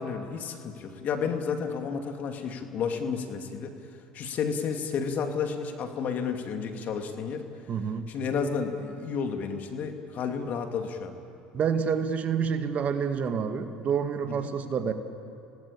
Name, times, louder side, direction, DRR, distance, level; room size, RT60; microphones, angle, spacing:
voice 1, 0.0-3.8 4.1-7.5 8.1-11.1 14.3-14.5, left 6 dB, 50° left, 5 dB, 2.6 m, -31 dB
voice 2, 7.7-8.1 11.5-14.9, right 6 dB, 45° right, 8 dB, 1.8 m, -28 dB
27.5 x 18.5 x 8.9 m, 2.6 s
hypercardioid pair, 80°, 4 cm